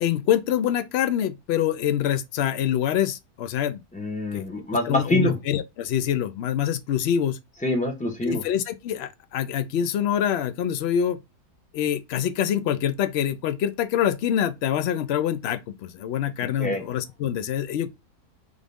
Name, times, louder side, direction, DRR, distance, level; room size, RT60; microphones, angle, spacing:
voice 1, 0.0-3.8 4.3-4.4 4.8-7.4 8.2-11.2 11.7-17.9, left 10 dB, 75° left, 0.6 m, -25 dB
voice 2, 3.9-5.4 7.6-8.4 16.6-16.8, left 1 dB, 5° left, 1.2 m, -25 dB
3.7 x 3.7 x 3.5 m
omnidirectional pair, 1.7 m